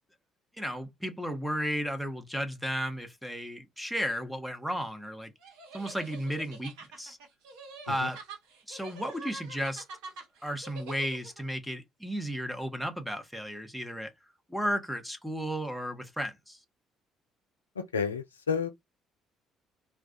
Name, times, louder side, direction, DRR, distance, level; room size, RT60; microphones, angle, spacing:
voice 1, 0.6-5.3 5.7-7.2 7.9-8.2 8.7-9.8 10.4-14.1 14.5-16.6, equal, ahead, 0.8 m, -34 dB
sound 1, 5.4-11.4, right 3 dB, 70° right, 0.7 m, -46 dB
voice 2, 17.8-18.7, left 6 dB, 85° left, 0.3 m, -31 dB
2.2 x 2.2 x 2.6 m
figure-of-eight pair, 50°, 0 cm